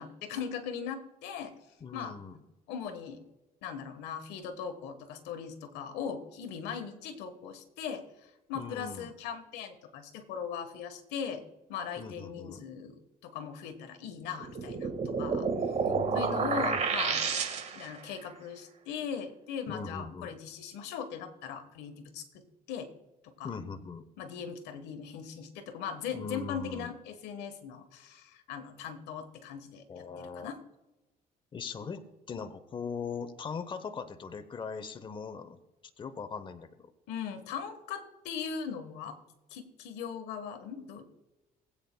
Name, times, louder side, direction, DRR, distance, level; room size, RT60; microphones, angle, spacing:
voice 1, 0.0-1.5 1.9-2.2 2.7-3.2 3.6-11.4 11.7-15.5 16.1-17.3 17.7-22.4 22.7-22.9 23.2-23.5 24.2-30.6 37.1-39.2 39.5-41.0, left 7 dB, 90° left, 8 dB, 1.3 m, -39 dB
voice 2, 1.8-2.4 8.5-9.1 12.0-12.6 15.8-16.8 19.7-20.4 23.4-24.0 26.1-26.9 29.9-30.5 31.5-32.0 32.3-35.6 36.0-36.9, left 5 dB, 30° left, 11 dB, 0.7 m, -40 dB
sound 1, 14.4-18.0, right 5 dB, 40° right, 1.5 m, -30 dB
20.0 x 8.4 x 2.2 m, 1.0 s
cardioid pair, 110°, 17 cm